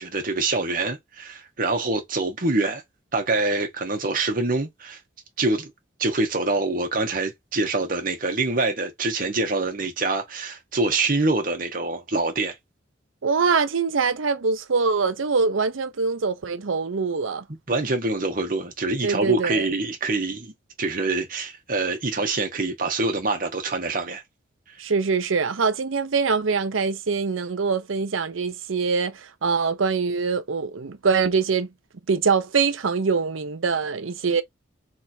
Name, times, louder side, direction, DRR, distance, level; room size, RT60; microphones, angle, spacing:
voice 1, 0.0-2.8 3.1-5.0 5.4-5.7 6.0-12.5 17.7-24.2, right 3 dB, 45° right, 1.4 m, -25 dB
voice 2, 13.2-17.4 19.0-19.7 24.8-31.7 32.1-34.4, right 5 dB, 90° right, 0.7 m, -23 dB
3.6 x 3.4 x 4.3 m
head